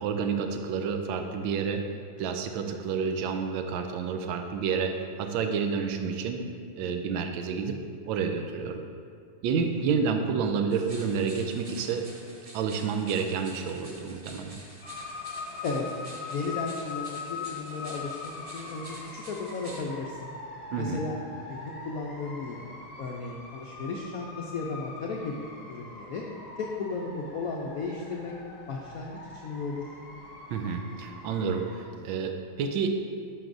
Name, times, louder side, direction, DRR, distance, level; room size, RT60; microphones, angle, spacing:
voice 1, 0.0-1.8 2.2-4.9 5.2-6.4 6.8-7.7 8.1-8.8 9.4-12.0 12.5-14.6 20.7-21.0 30.5-33.0, right 5 dB, 80° right, 5 dB, 1.3 m, -29 dB
voice 2, 9.6-9.9 15.6-15.9 16.3-20.3 20.8-21.2 21.5-22.7 23.0-26.2 26.6-28.3 28.7-29.9, left 4 dB, 75° left, -1 dB, 0.8 m, -35 dB
sound 1, 10.7-19.8, right 1 dB, 45° right, 0.4 m, -48 dB
sound 2, 14.8-31.8, left 4 dB, 40° left, 0.9 m, -42 dB
11.0 x 6.1 x 2.6 m, 2.3 s
omnidirectional pair, 2.2 m